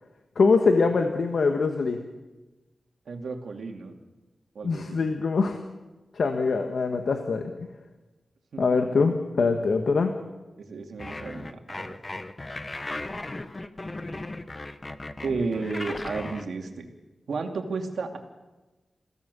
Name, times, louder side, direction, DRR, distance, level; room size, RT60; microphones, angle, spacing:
voice 1, 0.4-2.0 4.6-5.6 6.1-7.5 8.6-10.1, left 4 dB, 65° left, 5 dB, 1.5 m, -23 dB
voice 2, 3.1-3.9 4.5-5.0 8.5-9.0 10.6-11.9 15.2-16.9 17.3-18.2, right 4 dB, 80° right, 4 dB, 2.7 m, -33 dB
sound 1, 11.0-16.4, left 2 dB, 20° left, 1.0 m, -36 dB
28.5 x 16.5 x 7.0 m, 1.2 s
wide cardioid pair, 180°, 0 cm